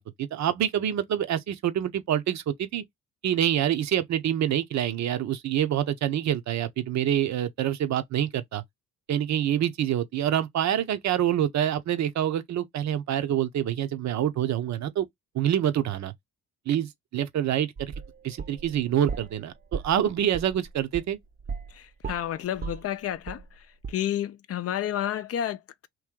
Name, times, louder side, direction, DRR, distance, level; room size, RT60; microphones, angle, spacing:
voice 1, 0.0-2.8 3.2-8.6 9.1-15.1 15.3-16.1 16.7-17.9 18.2-21.2, right 10 dB, 65° right, 0.8 m, -26 dB
sound 1, 17.8-19.4 19.7-21.8 22.0-23.6 23.8-23.9, right 5 dB, 30° right, 0.6 m, -36 dB
voice 2, 21.8-23.4 23.9-25.9, left 11 dB, 50° left, 0.5 m, -30 dB
3.1 x 2.7 x 3.7 m
cardioid pair, 90°, 30 cm